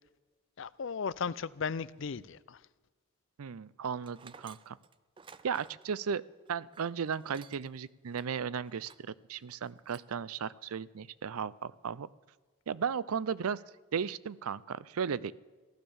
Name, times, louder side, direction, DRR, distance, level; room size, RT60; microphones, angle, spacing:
voice 1, 0.6-2.6, left 5 dB, 60° left, 0.5 m, -36 dB
voice 2, 3.4-4.8 5.4-6.2 6.5-12.1 12.7-13.6 13.9-15.3, right 6 dB, 85° right, 0.5 m, -35 dB
Tools, 4.0-7.8 8.1-8.3 8.7-9.1 9.5-10.1, right 5 dB, 25° right, 0.4 m, -55 dB
15.5 x 12.0 x 7.1 m
head